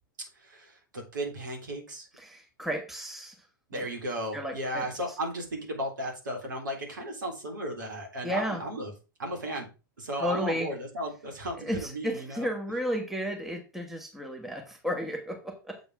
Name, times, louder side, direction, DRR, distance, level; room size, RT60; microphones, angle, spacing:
voice 1, 0.4-2.1 3.7-8.9 9.2-9.7 10.0-12.5, right 1 dB, 65° right, 1 dB, 3.5 m, -35 dB
voice 2, 2.2-3.5 3.7-3.8 4.3-4.9 8.2-8.6 10.2-10.7 11.6-15.8, equal, ahead, 3 dB, 1.5 m, -33 dB
8.0 x 6.8 x 3.5 m, 0.31 s
figure-of-eight pair, 100°, 11 cm